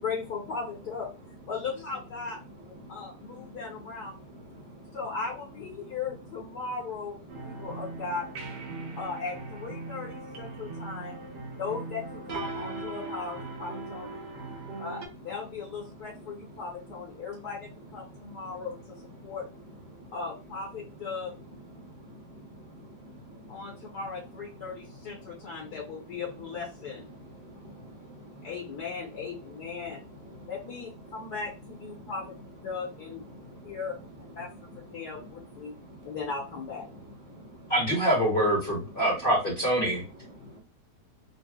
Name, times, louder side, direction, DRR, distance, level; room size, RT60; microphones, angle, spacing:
voice 1, 0.0-4.2 4.9-8.3 9.0-11.2 11.6-14.2 14.8-19.5 20.1-21.3 23.5-27.1 28.4-30.0 30.5-32.3 32.6-33.2 33.6-34.0 34.4-35.7 36.0-36.9, left 5 dB, 70° left, -3 dB, 1.3 m, -37 dB
voice 2, 2.7-3.8 4.1-5.0 5.8-6.0 7.3-7.8 8.7-9.0 9.8-11.6 14.2-14.9 16.1-16.6 18.0-18.6 19.2-19.4 19.9-20.1 21.7-24.0 24.5-25.8 27.1-28.5 29.9-30.5 31.1-31.3 31.9-32.1 33.3-33.8 34.4-34.6 34.9-35.3 35.6-36.2 36.9-37.0 37.2-37.7 39.9-40.6, equal, 15° right, -4 dB, 0.7 m, -49 dB
sound 1, 7.3-15.1, right 3 dB, 80° right, 1.3 m, -39 dB
voice 3, 37.7-40.0, right 1 dB, 40° left, -3 dB, 0.9 m, -25 dB
4.0 x 2.2 x 2.3 m, 0.31 s
omnidirectional pair, 1.9 m